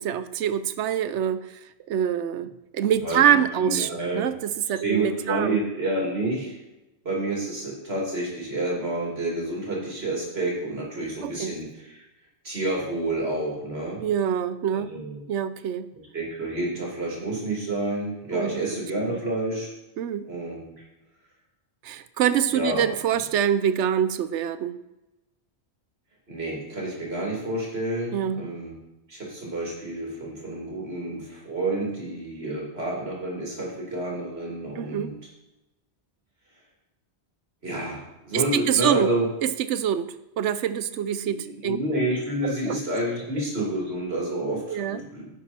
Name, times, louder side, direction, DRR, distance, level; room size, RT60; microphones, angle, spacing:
voice 1, 0.0-1.5 1.9-3.9 4.1-5.6 11.2-11.5 14.0-14.9 15.3-15.9 18.3-18.6 19.1-19.2 20.0-20.3 21.8-24.8 28.1-28.4 34.8-35.1 38.3-39.1 39.4-40.1 40.4-41.8 42.4-42.8 44.7-45.0, right 9 dB, 85° right, 14 dB, 0.9 m, -25 dB
voice 2, 3.0-4.3 4.7-6.6 7.0-12.0 12.4-14.0 14.7-15.2 16.1-19.7 20.3-20.7 22.5-22.8 26.3-28.8 29.1-35.1 37.6-38.0 38.2-39.3 41.2-45.3, right 1 dB, 60° right, -3 dB, 3.1 m, -29 dB
11.0 x 7.8 x 4.3 m, 0.99 s
omnidirectional pair, 1.2 m